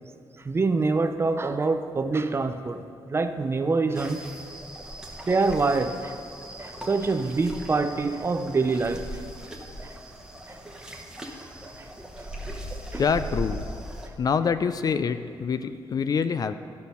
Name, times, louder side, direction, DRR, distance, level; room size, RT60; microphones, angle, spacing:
voice 1, 0.4-2.8 3.1-4.2 5.3-6.2 6.6-9.2, right 3 dB, 25° right, 9 dB, 0.5 m, -25 dB
sound 1, 3.9-14.1, equal, 5° right, 1.0 m, -39 dB
voice 2, 13.0-13.7 14.2-16.6, left 6 dB, 45° left, 11 dB, 0.4 m, -25 dB
11.5 x 6.3 x 5.5 m, 2.5 s
cardioid pair, 115°, 9 cm